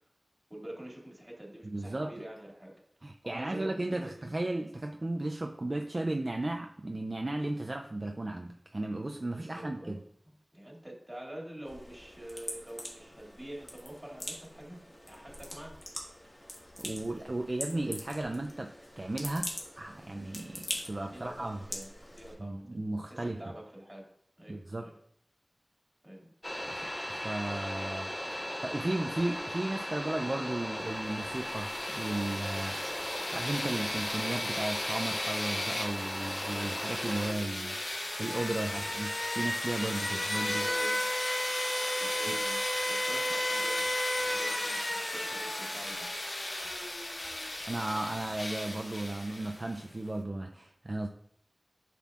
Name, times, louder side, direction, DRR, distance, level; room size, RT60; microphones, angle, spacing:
voice 1, 0.5-2.7 3.2-4.3 9.3-10.0 10.2-15.8 20.9-22.8 23.1-24.0 24.4-24.9 26.0-26.3 38.6-39.0 40.1-41.1 42.0-42.6 42.9-46.2, right 1 dB, 20° right, -2 dB, 2.2 m, -46 dB
voice 2, 1.6-2.1 3.0-10.0 16.8-21.6 22.4-23.4 24.5-24.9 26.7-40.7 42.3-42.4 47.7-51.1, right 2 dB, 45° right, 3 dB, 0.4 m, -35 dB
sound 1, 11.6-22.4, left 1 dB, 45° left, 1.5 m, -43 dB
sound 2, 26.4-37.3, left 1 dB, 20° left, 0.5 m, -37 dB
sound 3, 31.1-49.8, left 1 dB, 65° left, 1.0 m, -34 dB
6.9 x 5.8 x 2.4 m, 0.71 s
wide cardioid pair, 45°, 0 cm